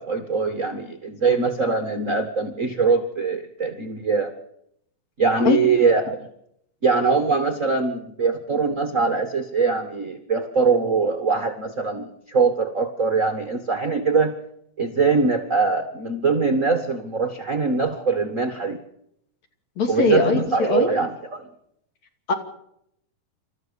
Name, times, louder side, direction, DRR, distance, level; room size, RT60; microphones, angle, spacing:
voice 1, 0.0-4.3 5.2-6.3 6.8-14.3 14.8-18.8 19.9-21.4, right 4 dB, 70° right, 7 dB, 0.7 m, -22 dB
voice 2, 19.8-20.9 22.3-22.4, left 4 dB, 50° left, 5 dB, 3.8 m, -21 dB
28.0 x 14.0 x 7.0 m, 0.73 s
omnidirectional pair, 4.2 m